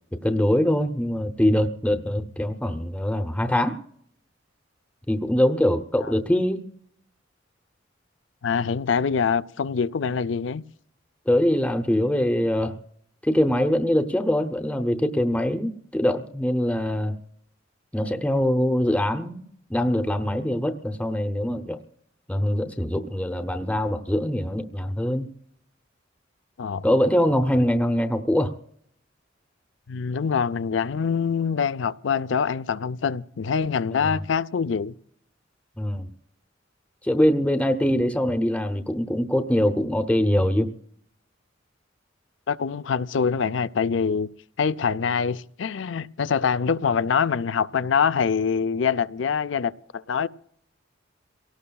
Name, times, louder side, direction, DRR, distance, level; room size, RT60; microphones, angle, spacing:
voice 1, 0.2-3.8 5.1-6.6 11.3-12.8 13.2-17.2 17.9-19.4 19.7-21.8 22.3-25.3 26.8-28.5 33.9-34.2 35.8-36.1 37.0-40.7, left 1 dB, 5° left, 0.7 m, -23 dB
voice 2, 8.4-10.6 26.6-26.9 29.9-34.9 42.5-44.3 44.6-50.3, left 6 dB, 70° left, 0.5 m, -24 dB
27.5 x 18.0 x 2.3 m
head